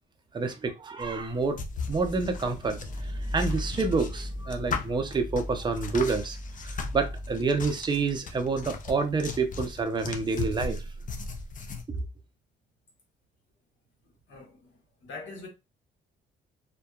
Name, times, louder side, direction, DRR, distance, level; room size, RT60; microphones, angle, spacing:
voice 1, 0.3-1.6 1.9-6.4 6.6-10.8, right 4 dB, 20° right, 0.5 m, -28 dB
sound 1, 1.0-11.8, left 4 dB, 40° left, 0.5 m, -38 dB
sound 2, 1.4-11.2, left 1 dB, ahead, 1.0 m, -38 dB
voice 2, 14.3-14.7 15.0-15.5, left 3 dB, 70° left, 1.4 m, -42 dB
2.6 x 2.2 x 2.3 m
cardioid pair, 90°, 20 cm